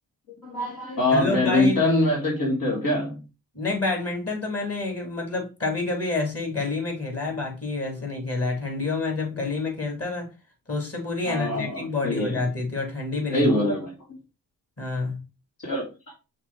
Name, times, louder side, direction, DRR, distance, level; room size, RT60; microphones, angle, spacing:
voice 1, 0.4-3.2 11.3-12.4 13.3-13.9 15.6-15.9, left 1 dB, 65° left, 2.8 m, -23 dB
voice 2, 1.1-1.8 3.5-10.3 10.7-13.5 14.8-15.2, left 3 dB, 40° left, 4.0 m, -28 dB
6.0 x 4.4 x 4.4 m
supercardioid pair, 60°, 37 cm